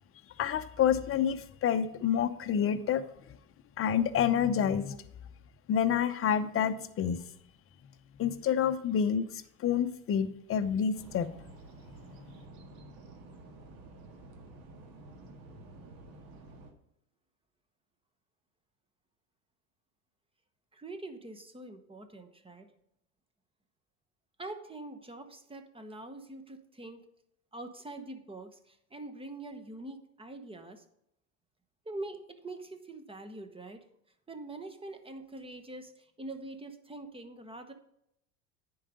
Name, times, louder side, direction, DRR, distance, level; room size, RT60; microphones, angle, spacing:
voice 1, 0.4-3.0 3.8-5.0 5.7-7.2 8.2-9.3 9.6-11.3, left 8 dB, 30° left, 11 dB, 0.7 m, -28 dB
sound 1, 10.9-16.7, right 2 dB, 60° right, 1.8 m, -51 dB
voice 2, 20.7-22.7 24.4-27.0 27.5-30.8 31.8-33.8 34.3-37.7, right 2 dB, 15° right, 8 dB, 1.0 m, -44 dB
9.9 x 4.8 x 5.1 m, 0.76 s
hypercardioid pair, 95°, 42 cm